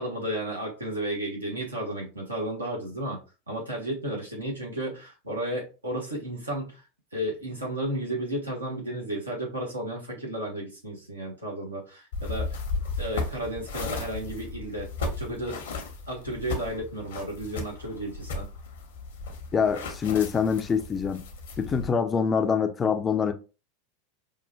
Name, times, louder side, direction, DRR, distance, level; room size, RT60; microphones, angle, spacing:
voice 1, 0.0-3.2 3.5-6.8 7.1-12.6 13.0-15.6 16.1-18.5, right 1 dB, 80° right, 1.3 m, -33 dB
sound 1, 12.1-21.9, left 3 dB, 60° left, 0.8 m, -35 dB
voice 2, 19.5-21.2 21.6-23.3, left 6 dB, 20° left, 0.5 m, -25 dB
5.4 x 2.4 x 2.2 m
figure-of-eight pair, 85°, 0 cm